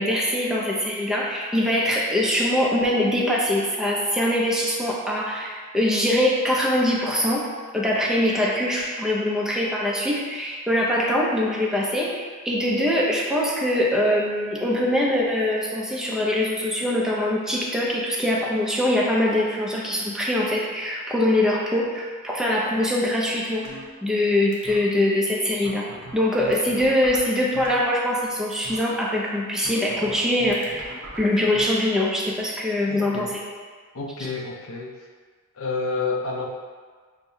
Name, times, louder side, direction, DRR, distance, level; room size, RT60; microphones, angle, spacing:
voice 1, 0.0-7.5 7.7-23.6 24.0-25.9 26.1-33.4, left 1 dB, 5° right, -4 dB, 0.5 m, -23 dB
sound 1, 23.6-24.2 24.5-24.8 25.3-25.4 25.6-28.2 28.5-28.8 29.6-31.6, right 2 dB, 60° right, 0.8 m, -41 dB
voice 2, 32.9-33.3 33.9-34.9 35.5-36.5, left 4 dB, 65° left, 0 dB, 0.6 m, -29 dB
6.3 x 2.1 x 2.7 m, 1.5 s
head